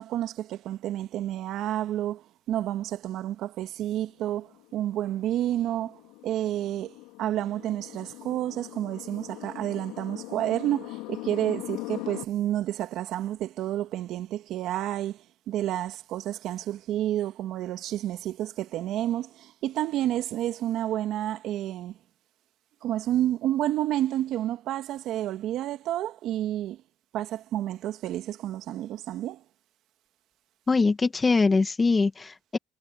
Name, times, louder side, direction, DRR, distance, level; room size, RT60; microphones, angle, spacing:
voice 1, 0.0-22.0 22.8-26.8 27.1-29.4, right 12 dB, 70° right, 2.0 m, -30 dB
sound 1, 4.2-12.3, left 21 dB, 85° left, 3.5 m, -41 dB
voice 2, 30.7-32.6, left 4 dB, 25° left, 2.0 m, -23 dB
supercardioid pair, 80°, 0 cm